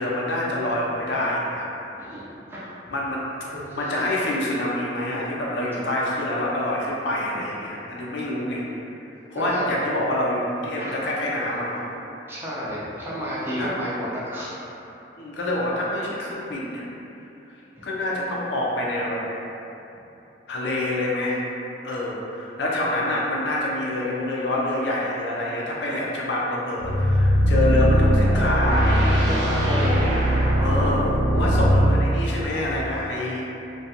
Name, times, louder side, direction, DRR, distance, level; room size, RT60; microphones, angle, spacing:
voice 1, 0.0-1.7 2.9-8.6 9.3-11.8 13.6-13.7 15.2-16.8 17.8-19.2 20.5-21.4 21.8-29.2 30.6-33.4, left 1 dB, 80° left, -4 dB, 0.4 m, -26 dB
voice 2, 2.0-2.6 3.5-4.0 9.3-9.6 10.8-11.0 12.3-14.6 29.0-30.1, equal, 15° right, -8 dB, 0.5 m, -31 dB
sound 1, 26.8-32.0, equal, 75° right, 1.0 m, -20 dB
2.5 x 2.2 x 2.7 m, 2.9 s
head